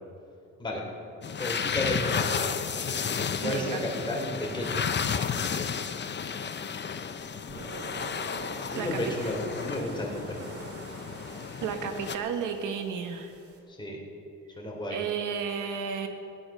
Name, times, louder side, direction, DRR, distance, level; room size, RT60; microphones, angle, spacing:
sound 1, 1.2-12.2, left 6 dB, 35° left, 0.8 m, -32 dB
voice 1, 1.4-2.5 3.4-4.9 8.6-10.4 13.7-14.0 14.6-15.0, left 1 dB, 15° left, -2 dB, 3.8 m, -32 dB
voice 2, 3.4-3.8 8.8-9.0 11.6-13.3 14.9-16.1, right 6 dB, 85° right, 6 dB, 1.5 m, -32 dB
sound 2, 7.2-13.6, right 3 dB, 50° right, 2.4 m, -45 dB
16.5 x 9.9 x 6.5 m, 2.6 s
cardioid pair, 90°, 30 cm